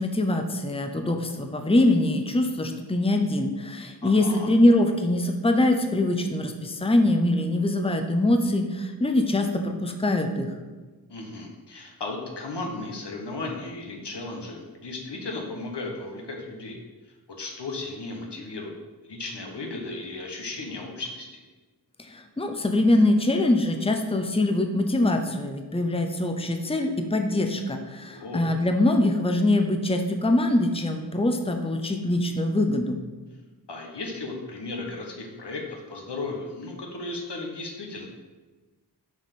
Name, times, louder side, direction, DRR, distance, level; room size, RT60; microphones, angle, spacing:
voice 1, 0.0-10.5 22.1-33.0, left 1 dB, 15° left, 5 dB, 0.8 m, -23 dB
voice 2, 4.0-4.5 11.1-16.8 17.4-18.8 19.0-21.4 28.1-28.4 33.7-38.1, left 2 dB, 75° left, 1 dB, 1.4 m, -35 dB
6.6 x 4.8 x 5.5 m, 1.3 s
cardioid pair, 40°, 41 cm